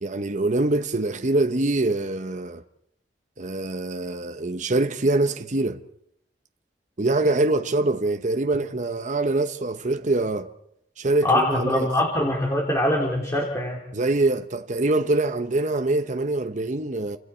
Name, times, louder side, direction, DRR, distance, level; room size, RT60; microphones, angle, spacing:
voice 1, 0.0-2.6 3.4-5.8 7.0-10.5 11.0-11.9 13.9-17.2, right 2 dB, 45° right, 0.9 m, -24 dB
voice 2, 11.2-13.8, left 1 dB, 20° left, 3.2 m, -23 dB
29.5 x 26.5 x 4.5 m
head